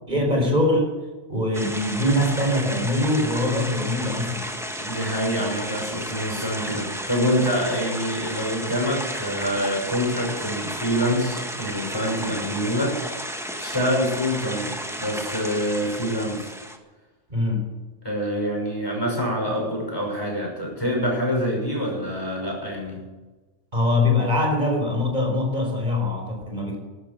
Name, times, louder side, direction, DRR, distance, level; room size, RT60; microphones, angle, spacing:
voice 1, 0.1-0.9 1.3-4.5 17.3-17.6 23.7-26.8, left 1 dB, 40° right, 2 dB, 4.5 m, -23 dB
sound 1, 1.5-16.8, equal, ahead, 1.4 m, -33 dB
voice 2, 4.8-13.0 13.6-16.5 18.0-23.1, equal, 20° left, -1 dB, 6.0 m, -26 dB
12.5 x 12.5 x 7.8 m, 1.2 s
omnidirectional pair, 1.2 m